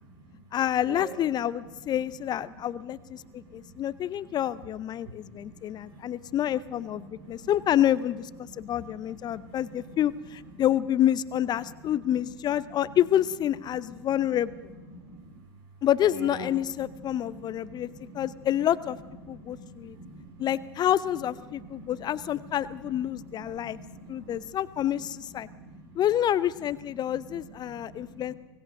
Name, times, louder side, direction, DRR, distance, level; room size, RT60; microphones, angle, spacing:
voice 1, 0.0-0.4 0.9-1.1 3.2-3.7 4.2-4.3 5.0-6.3 7.1-7.5 8.5-8.9 9.2-9.9 10.6-10.7 11.6-11.8 12.6-12.7 13.9-14.3 14.9-15.4 16.0-16.5 16.8-16.9 17.2-18.5 19.2-20.5 21.5-22.3 22.9-24.5 24.9-25.1 25.4-25.8 27.6-28.4, right 2 dB, 55° right, 5 dB, 4.8 m, -46 dB
voice 2, 0.5-14.5 15.8-17.9 18.1-19.0 19.3-20.0 20.4-23.8 24.1-25.5 26.0-28.3, left 11 dB, 30° left, 17 dB, 0.6 m, -28 dB
25.0 x 18.5 x 6.6 m, 1.2 s
figure-of-eight pair, 85°, 14 cm